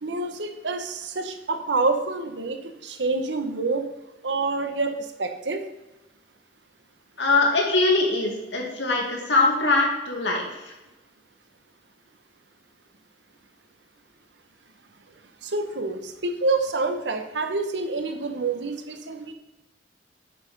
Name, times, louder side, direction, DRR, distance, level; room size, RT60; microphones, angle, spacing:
voice 1, 0.0-3.9 4.2-5.6 15.4-19.3, right 3 dB, 80° right, 7 dB, 1.0 m, -27 dB
voice 2, 7.2-10.6, left 3 dB, 90° left, 0 dB, 2.2 m, -22 dB
8.0 x 5.9 x 5.3 m, 1.1 s
head